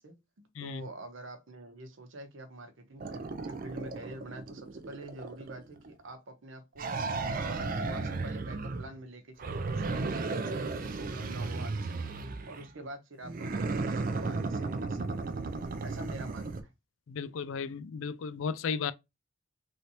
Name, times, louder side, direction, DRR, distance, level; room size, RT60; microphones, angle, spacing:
voice 1, 0.0-12.2 12.5-15.4 15.8-16.7, right 2 dB, 70° right, 0.8 m, -46 dB
voice 2, 0.6-0.9 17.1-18.9, left 6 dB, 75° left, 0.4 m, -35 dB
sound 1, 3.0-5.9 6.8-9.0 9.4-12.7 13.2-16.6, right 3 dB, 40° right, 0.3 m, -35 dB
3.2 x 2.7 x 2.8 m
head